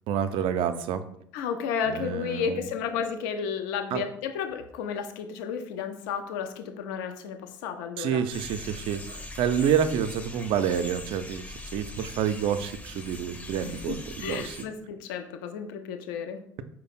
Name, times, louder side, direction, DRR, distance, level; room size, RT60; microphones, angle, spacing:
voice 1, 0.1-1.0 1.9-2.6 3.9-4.1 8.0-14.6, right 8 dB, 55° right, 10 dB, 0.4 m, -28 dB
voice 2, 1.3-8.2 13.6-16.4, left 7 dB, 65° left, 7 dB, 0.4 m, -32 dB
sound 1, 8.3-14.7, left 2 dB, 15° left, 0.6 m, -41 dB
4.8 x 2.1 x 4.1 m, 0.68 s
figure-of-eight pair, 60°, 11 cm